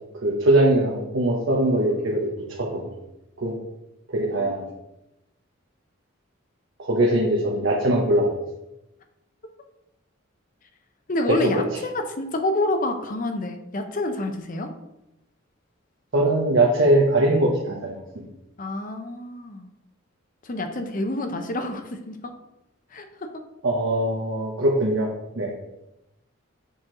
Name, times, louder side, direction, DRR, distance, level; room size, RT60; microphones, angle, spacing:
voice 1, 0.2-2.3 2.6-2.9 3.4-3.5 4.1-4.6 6.8-8.3 11.3-11.6 16.1-18.3 23.6-25.1 25.4-25.5, right 1 dB, 60° right, -2 dB, 0.9 m, -21 dB
voice 2, 11.1-14.7 18.6-19.7 20.4-22.3 22.9-23.4, left 2 dB, 40° left, 6 dB, 0.7 m, -28 dB
6.6 x 4.5 x 3.8 m, 0.91 s
head